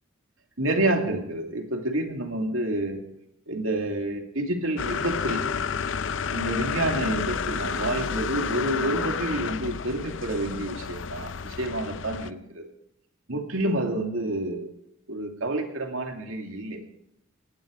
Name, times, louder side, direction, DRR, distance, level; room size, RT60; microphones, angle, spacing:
voice 1, 0.6-3.0 3.5-5.4 6.3-12.7 13.3-14.7 15.1-16.8, right 1 dB, 90° right, 3 dB, 2.7 m, -28 dB
sound 1, 4.8-12.3, left 6 dB, 70° left, 0.6 m, -30 dB
18.0 x 13.0 x 5.3 m, 0.77 s
head